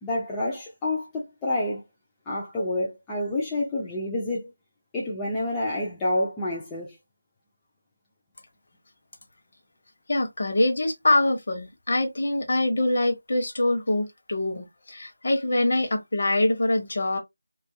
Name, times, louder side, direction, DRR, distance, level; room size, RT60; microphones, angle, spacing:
voice 1, 0.0-1.8 2.3-4.5 4.9-7.0, left 1 dB, 10° left, 0.4 m, -28 dB
voice 2, 10.1-17.2, left 1 dB, 45° left, 0.8 m, -24 dB
2.5 x 2.3 x 2.5 m
figure-of-eight pair, 165°, 0 cm